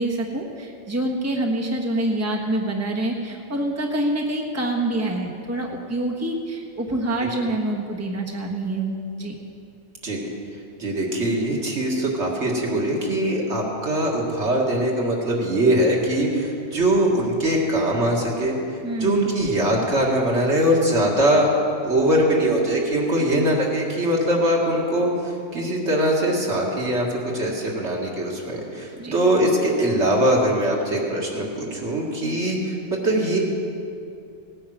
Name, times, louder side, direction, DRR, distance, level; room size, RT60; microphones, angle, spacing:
voice 1, 0.0-9.4 18.8-19.3 29.0-29.2, right 1 dB, 15° right, -1 dB, 1.3 m, -26 dB
voice 2, 10.8-18.6 19.0-21.5 21.8-25.1 25.5-27.1 27.3-32.6 32.9-33.4, right 1 dB, 70° right, -2 dB, 2.4 m, -22 dB
17.0 x 9.4 x 6.3 m, 2.5 s
omnidirectional pair, 1.2 m